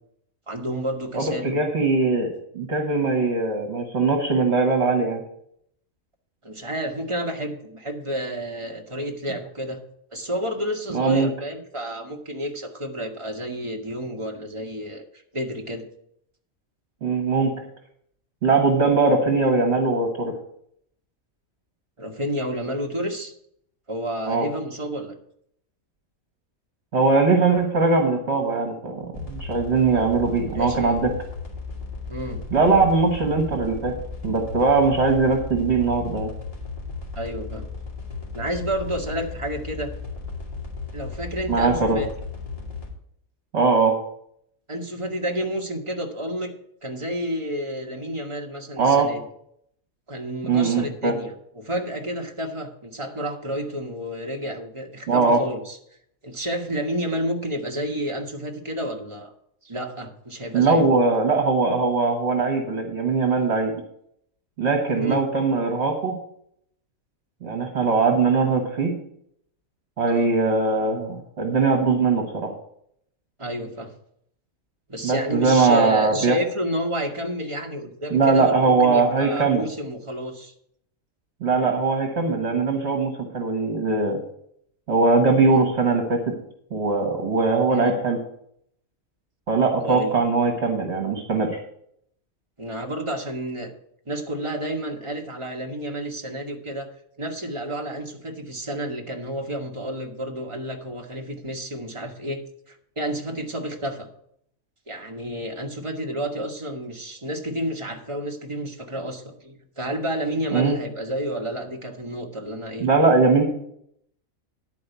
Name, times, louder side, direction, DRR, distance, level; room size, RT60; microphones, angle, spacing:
voice 1, 0.5-1.6 6.4-9.8 10.1-15.0 15.3-15.8 22.0-23.3 23.9-25.1 29.9-30.2 30.5-31.1 32.1-32.4 37.1-37.6 38.3-39.9 40.9-42.1 44.7-46.5 46.8-49.2 50.1-55.8 56.2-59.3 59.6-60.9 64.9-65.2 70.0-70.3 73.4-73.9 74.9-80.5 85.4-85.7 87.7-88.0 89.8-90.1 92.6-93.7 94.0-96.9 97.2-102.4 102.7-104.1 104.9-112.9, equal, 25° right, 1 dB, 1.4 m, -30 dB
voice 2, 1.1-5.2 10.9-11.3 17.0-17.5 18.4-20.3 24.3-24.5 26.9-31.1 32.5-34.0 34.2-36.3 41.5-42.0 43.5-43.9 48.8-49.1 50.5-51.1 55.1-55.4 60.5-63.7 64.6-66.2 67.4-68.9 70.0-72.5 75.0-76.4 78.1-79.6 81.4-84.2 84.9-86.3 86.7-88.2 89.5-91.6 110.5-110.8 112.8-113.4, right 4 dB, 50° right, 2 dB, 1.7 m, -21 dB
sound 1, 29.1-42.9, left 4 dB, 25° left, 2.5 m, -35 dB
10.5 x 4.8 x 8.1 m, 0.69 s
omnidirectional pair, 1.4 m